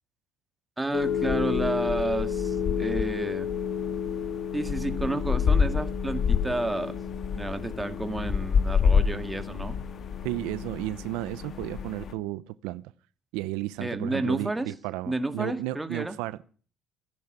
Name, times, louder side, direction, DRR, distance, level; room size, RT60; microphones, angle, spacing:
voice 1, 0.8-3.5 4.5-7.0 7.3-9.8 13.8-14.7 15.1-16.2, right 2 dB, 10° right, 2.1 m, -31 dB
sound 1, 0.9-12.1, left 6 dB, 50° left, 1.8 m, -28 dB
voice 2, 10.2-12.8 13.3-16.4, right 17 dB, 85° right, 0.7 m, -33 dB
16.0 x 10.5 x 6.7 m
supercardioid pair, 90°, 0 cm